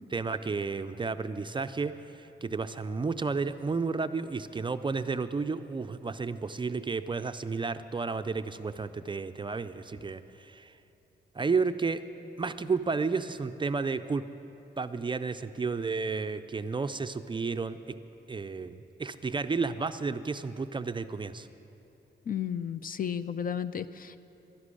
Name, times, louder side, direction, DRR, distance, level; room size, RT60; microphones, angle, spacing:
voice 1, 0.1-10.7 11.3-12.0 12.4-14.2 14.8-18.0 18.3-21.5, right 4 dB, 25° right, 10 dB, 0.4 m, -32 dB
voice 2, 22.3-24.2, left 8 dB, 50° left, 13 dB, 0.4 m, -33 dB
12.0 x 11.5 x 9.8 m, 3.0 s
wide cardioid pair, 160°, 20 cm